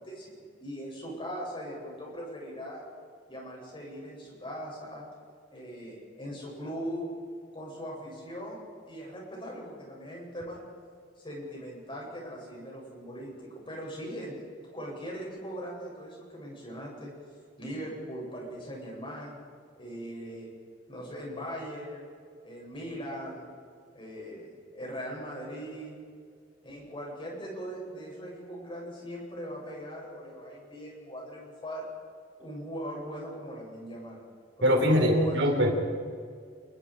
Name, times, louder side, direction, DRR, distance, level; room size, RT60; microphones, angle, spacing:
voice 1, 0.0-2.8 3.3-5.1 5.5-7.1 7.5-10.6 11.2-14.4 14.7-17.1 17.6-19.4 19.8-20.5 20.9-22.1 22.4-23.5 23.9-26.0 26.6-31.8 32.4-34.2 34.6-35.5, equal, 30° left, -3 dB, 7.8 m, -40 dB
voice 2, 34.6-35.7, equal, 70° right, 2 dB, 4.6 m, -22 dB
29.0 x 21.5 x 5.1 m, 2.1 s
head